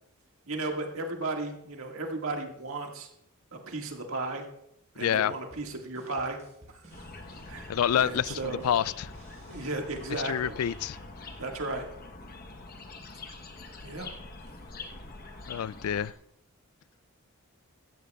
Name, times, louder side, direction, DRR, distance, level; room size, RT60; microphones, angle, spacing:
voice 1, 0.5-3.1 3.5-4.4 4.9-6.4 6.7-7.1 7.5-8.6 9.5-10.5 11.4-11.9 13.8-14.1, right 2 dB, 70° right, 1.8 m, -35 dB
voice 2, 5.0-5.3 7.7-9.1 10.2-11.0 15.5-16.1, left 9 dB, 75° left, 0.3 m, -27 dB
sound 1, 5.2-11.7, right 1 dB, 30° right, 4.4 m, -55 dB
sound 2, 6.9-16.1, left 3 dB, 40° left, 1.0 m, -45 dB
16.5 x 13.5 x 2.3 m
head